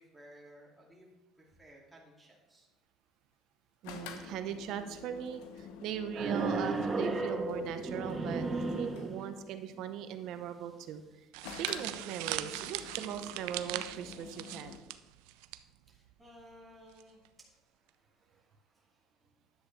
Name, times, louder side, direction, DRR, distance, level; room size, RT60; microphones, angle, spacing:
voice 1, 0.0-2.7 15.9-19.3, equal, 5° right, -4 dB, 2.3 m, -58 dB
sound 1, 3.8-9.3 11.4-14.8, left 6 dB, 85° left, 1.0 m, -48 dB
voice 2, 3.8-11.0 11.6-14.8, right 9 dB, 65° right, 9 dB, 0.9 m, -40 dB
sound 2, 6.1-9.5, right 3 dB, 30° right, 1.1 m, -34 dB
sound 3, 11.3-15.6 15.9-16.1 17.0-17.3, right 15 dB, 85° right, 0.4 m, -39 dB
10.0 x 8.1 x 3.3 m, 1.1 s
supercardioid pair, 100°, 0 cm